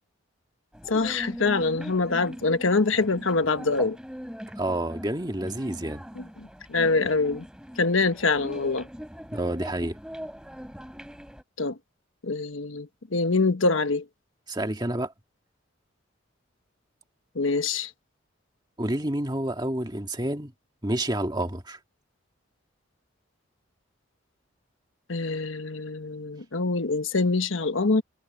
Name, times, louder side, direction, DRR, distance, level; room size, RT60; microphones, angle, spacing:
sound 1, 0.7-11.4, equal, 5° right, 4.9 m, -41 dB
voice 1, 0.9-4.0 6.2-6.3 6.7-7.4 7.8-8.9 11.6-11.7 12.2-12.9 13.1-14.0 17.3-17.9 25.1-28.0, left 3 dB, 75° left, 1.2 m, -24 dB
voice 2, 4.6-6.0 9.3-10.0 14.5-15.1 18.8-20.5 20.8-21.8, right 1 dB, 20° right, 1.9 m, -29 dB
head